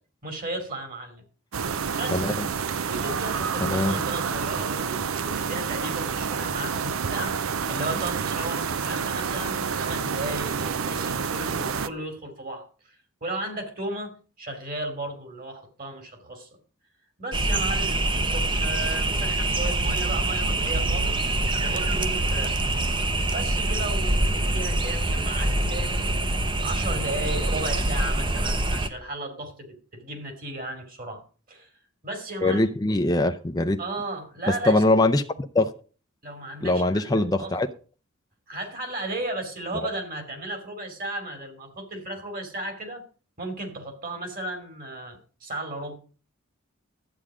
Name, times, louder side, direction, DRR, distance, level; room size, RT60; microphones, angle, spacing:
voice 1, 0.2-1.2 1.9-2.3 2.9-16.5 17.2-21.3 21.6-22.6 23.3-26.2 26.6-31.2 31.5-31.7 32.0-32.6 33.8-34.8 36.2-37.6 38.5-43.0 43.4-46.0, right 2 dB, 45° right, 2.8 m, -35 dB
sound 1, 1.5-11.9, right 6 dB, 85° right, 0.6 m, -28 dB
voice 2, 2.1-2.5 3.6-4.0 32.4-33.8 34.5-35.2 35.5-35.7 36.6-37.7, left 2 dB, 20° left, 0.5 m, -22 dB
sound 2, 17.3-28.9, right 2 dB, 25° right, 0.8 m, -25 dB
12.0 x 8.7 x 4.9 m
head